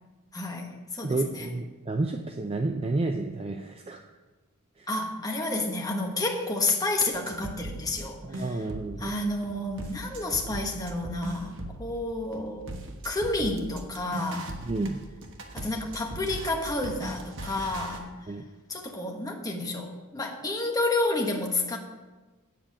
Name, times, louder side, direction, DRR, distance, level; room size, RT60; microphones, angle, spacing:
voice 1, 0.3-1.5 4.9-8.6 9.0-12.7 13.0-14.6 15.5-18.1 18.7-21.8, left 2 dB, 15° left, 1 dB, 1.3 m, -30 dB
voice 2, 1.0-4.0 4.8-4.9 8.2-9.1 14.7-15.0 18.3-18.4, right 2 dB, 25° right, 4 dB, 0.5 m, -30 dB
sound 1, 7.1-8.1 8.3-9.1 9.4-12.0 12.3-18.0, right 1 dB, 60° right, 1.3 m, -39 dB
8.8 x 7.6 x 6.2 m, 1.2 s
head